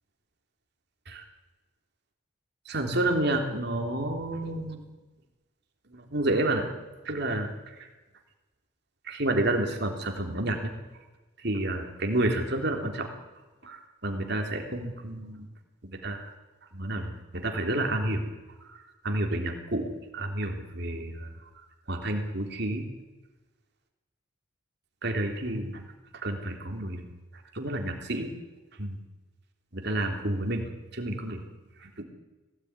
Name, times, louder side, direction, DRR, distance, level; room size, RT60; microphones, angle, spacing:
voice 1, 2.6-4.8 5.9-6.7 7.0-7.9 9.0-10.7 11.4-13.1 13.6-15.5 15.8-16.3 16.7-18.2 18.6-18.8 19.0-21.3 21.9-22.9 25.0-27.1 27.5-28.3 28.8-29.0 29.7-31.4 31.8-32.0, right 1 dB, 55° right, 3 dB, 3.4 m, -30 dB
20.0 x 17.0 x 9.8 m, 1.2 s
head